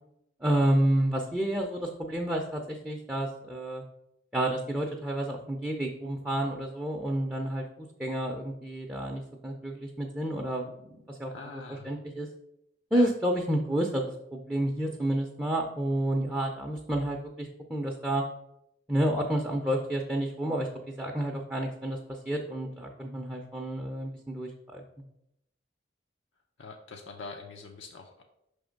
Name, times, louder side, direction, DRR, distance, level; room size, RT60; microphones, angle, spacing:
voice 1, 0.4-3.8 4.3-7.6 8.0-10.7 11.1-11.3 11.8-12.3 12.9-18.2 18.9-24.8, right 1 dB, 10° right, 0 dB, 0.5 m, -30 dB
voice 2, 11.3-11.9 12.9-13.1 26.6-28.2, left 4 dB, 85° left, 1 dB, 0.6 m, -44 dB
5.7 x 3.4 x 5.1 m, 0.83 s
head